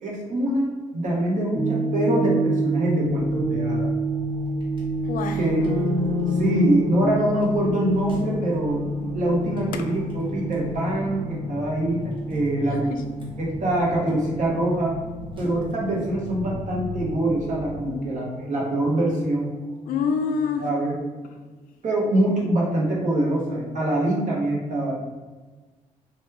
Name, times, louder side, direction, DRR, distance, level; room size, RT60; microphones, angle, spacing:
voice 1, 0.0-3.9 5.4-5.7 6.3-8.8 9.1-12.9 13.4-15.0 15.4-19.5 20.6-21.0 21.8-24.9, right 1 dB, 60° right, -3 dB, 1.0 m, -24 dB
sound 1, 1.5-21.0, right 2 dB, ahead, 0.4 m, -30 dB
sound 2, 3.0-17.8, equal, 35° right, 1.0 m, -41 dB
voice 2, 5.1-5.5 9.9-10.0 12.7-13.0 17.9-18.1 19.9-20.6, left 6 dB, 85° left, 6 dB, 0.4 m, -27 dB
sound 3, 5.4-13.2, left 3 dB, 85° right, 0.4 m, -31 dB
3.0 x 2.3 x 3.2 m, 1.3 s
cardioid pair, 90°, 14 cm